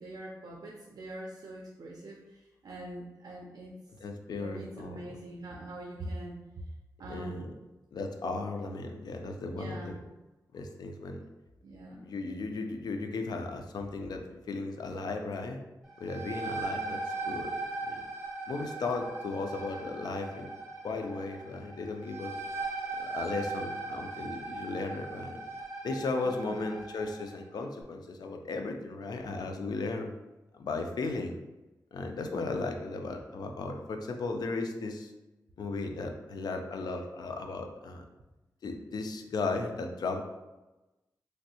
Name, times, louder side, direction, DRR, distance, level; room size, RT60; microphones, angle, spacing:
voice 1, 0.0-3.8 4.4-6.4 7.0-7.4 9.5-9.9 11.6-12.0 26.2-26.7, right 1 dB, 65° right, -1 dB, 0.4 m, -43 dB
voice 2, 4.0-5.1 7.1-7.5 7.9-10.0 10.5-11.2 12.0-15.6 16.0-17.5 17.8-18.1 18.5-20.5 20.8-22.4 23.0-25.4 25.8-30.1 30.5-31.4 31.9-35.1 35.6-38.0 38.6-40.2, left 3 dB, 75° left, 4 dB, 0.4 m, -36 dB
sound 1, 15.8-27.3, right 3 dB, ahead, 1.2 m, -39 dB
3.2 x 2.6 x 2.8 m, 1.1 s
wide cardioid pair, 105°, 7 cm